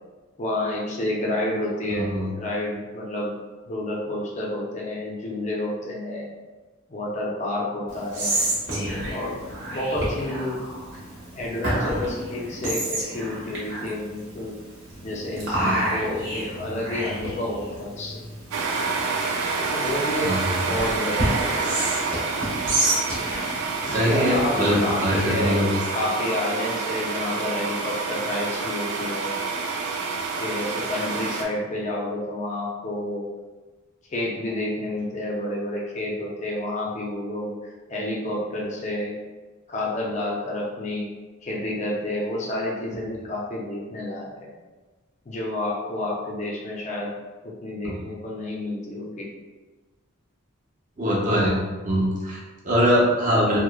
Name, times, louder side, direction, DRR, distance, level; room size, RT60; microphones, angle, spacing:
voice 1, 0.4-3.3 3.7-6.3 6.9-8.4 9.1-10.6 11.3-14.6 15.0-18.2 19.7-21.7 23.8-25.6 25.9-29.3 30.4-33.3 34.1-37.6 37.9-39.2 39.7-41.1 41.4-44.5 45.2-47.1 47.4-49.3, left 1 dB, 35° left, -3 dB, 0.4 m, -29 dB
voice 2, 1.9-2.3 8.7-8.9 15.6-15.8 20.2-20.6 23.8-25.8 51.0-51.5 51.8-53.6, equal, 35° right, -4 dB, 0.6 m, -22 dB
Whispering, 7.9-25.5, right 1 dB, 60° right, 0.9 m, -30 dB
sound 1, 18.5-31.4, right 4 dB, 90° right, 0.4 m, -28 dB
2.9 x 2.0 x 2.3 m, 1.3 s
head